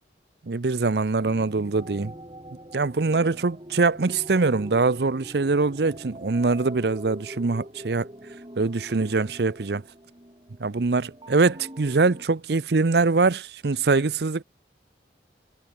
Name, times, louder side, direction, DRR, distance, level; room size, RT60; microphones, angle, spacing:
voice 1, 0.5-2.1 2.7-8.1 8.6-9.8 10.6-14.4, right 3 dB, 65° right, 0.7 m, -23 dB
sound 1, 1.2-12.2, right 1 dB, 25° right, 5.0 m, -44 dB
head